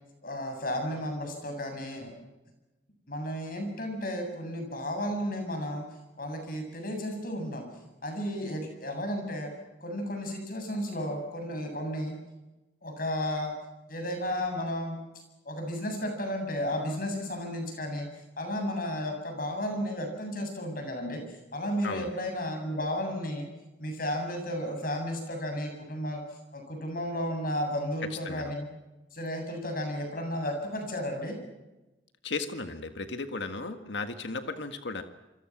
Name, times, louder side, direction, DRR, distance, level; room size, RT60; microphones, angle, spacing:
voice 1, 0.2-2.1 3.1-5.8 6.2-7.7 8.0-9.5 9.8-12.2 12.8-13.5 13.9-15.0 15.4-18.1 18.4-21.2 21.5-23.5 23.8-26.2 26.5-28.7 29.1-31.4, equal, 50° left, 4 dB, 7.8 m, -33 dB
voice 2, 32.2-35.0, left 3 dB, 80° left, 7 dB, 1.7 m, -35 dB
28.0 x 25.5 x 6.1 m, 1.1 s
head